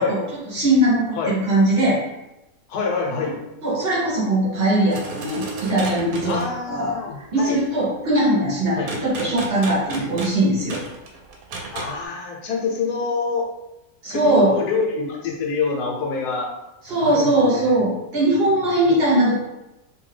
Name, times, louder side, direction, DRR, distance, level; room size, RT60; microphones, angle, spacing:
voice 1, 0.0-2.0 3.6-7.0 7.3-10.8 14.0-14.6 16.8-19.4, right 1 dB, 50° right, -6 dB, 0.8 m, -20 dB
voice 2, 2.7-3.4 6.3-7.6 8.8-8.9 11.7-13.5 14.1-16.5 17.0-17.6, left 4 dB, 80° left, 0 dB, 1.1 m, -26 dB
sound 1, 4.9-6.5 8.9-12.0, right 2 dB, 75° right, 1.0 m, -34 dB
2.6 x 2.3 x 3.2 m, 0.95 s
omnidirectional pair, 1.6 m